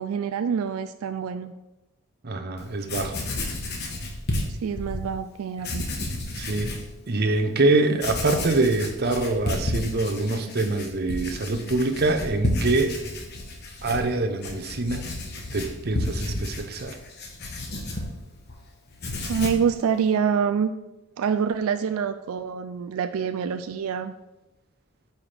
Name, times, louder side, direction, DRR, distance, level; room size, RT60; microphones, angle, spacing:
voice 1, 0.0-1.5 4.5-5.8 19.3-20.7 21.2-24.1, right 7 dB, 75° right, 9 dB, 0.3 m, -26 dB
voice 2, 2.2-3.1 6.4-6.8 7.1-13.0 13.8-15.1 15.5-17.0, right 2 dB, 50° right, 7 dB, 0.8 m, -24 dB
Writing, 2.6-2.7 2.9-5.0 5.6-6.9 7.3-7.4 7.9-18.6 18.9-19.7, left 1 dB, 50° left, 1.2 m, -31 dB
9.2 x 5.7 x 3.4 m, 0.99 s
head